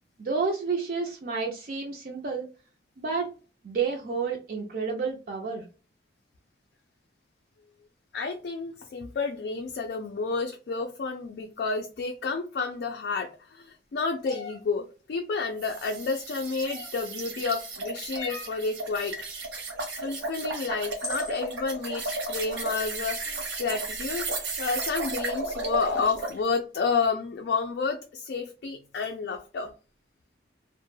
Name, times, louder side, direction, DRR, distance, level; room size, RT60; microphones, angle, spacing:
voice 1, 0.2-2.5 3.0-3.3 3.6-5.7, right 5 dB, 50° right, 0.4 m, -30 dB
voice 2, 8.1-19.1 20.0-29.7, left 4 dB, 65° left, 0.3 m, -30 dB
sound 1, 14.2-14.6 16.6-17.1 18.1-18.6 20.3-20.4 21.0-21.4, left 2 dB, 20° left, 0.6 m, -38 dB
sound 2, 15.6-26.4, right 2 dB, 75° right, 0.8 m, -34 dB
2.1 x 2.1 x 3.0 m
head